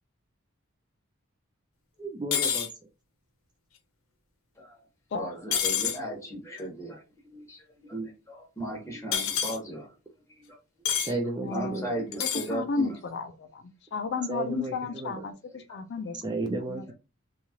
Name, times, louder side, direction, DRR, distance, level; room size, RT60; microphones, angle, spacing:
voice 1, 2.0-2.7 11.0-11.9 14.3-15.2 16.2-16.9, right 2 dB, 20° right, 2 dB, 0.4 m, -33 dB
sound 1, 2.3-2.7 5.5-6.0 9.1-9.6 10.9-11.1 12.1-12.5, left 8 dB, 80° left, 0.7 m, -27 dB
voice 2, 5.1-7.0 7.3-7.6 7.9-9.9 11.0-11.2 11.5-12.9 15.7-15.8, right 1 dB, 15° left, -1 dB, 1.0 m, -36 dB
voice 3, 11.4-13.6 13.9-16.2 16.7-16.8, left 4 dB, 55° left, 7 dB, 0.4 m, -33 dB
2.8 x 2.3 x 2.9 m, 0.30 s
head